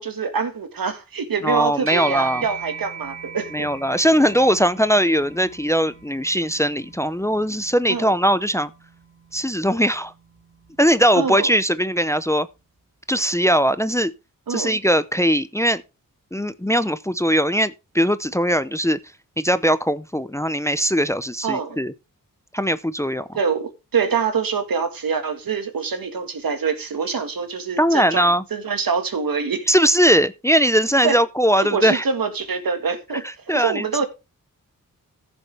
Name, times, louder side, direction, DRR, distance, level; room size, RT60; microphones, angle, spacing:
voice 1, 0.0-3.7 7.9-8.1 11.1-11.5 14.5-14.7 21.4-21.8 23.3-29.7 31.0-31.2 31.6-33.2 33.5-34.1, right 5 dB, 80° right, 1.9 m, -25 dB
voice 2, 1.4-2.4 3.5-8.7 9.3-10.1 10.8-12.5 13.1-14.1 14.5-15.8 16.3-19.0 19.4-21.9 22.5-23.3 27.8-28.4 29.7-32.1 33.2-33.9, equal, 10° left, 0.6 m, -20 dB
sound 1, 1.9-11.5, right 7 dB, 40° right, 2.6 m, -39 dB
15.0 x 7.0 x 3.4 m
wide cardioid pair, 95°, 34 cm